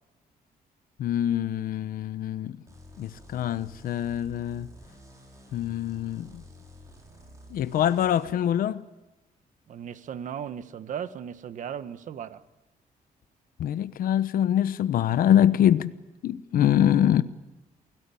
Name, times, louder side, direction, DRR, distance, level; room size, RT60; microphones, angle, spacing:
voice 1, 1.0-2.6 3.0-4.7 5.5-6.4 7.5-8.8 13.6-15.9 16.2-17.2, left 10 dB, 70° left, 1.0 m, -24 dB
sound 1, 2.7-8.3, left 1 dB, 20° right, 6.4 m, -50 dB
voice 2, 9.7-12.4, right 8 dB, 55° right, 1.3 m, -36 dB
29.0 x 18.5 x 8.5 m
cardioid pair, 170°, 16 cm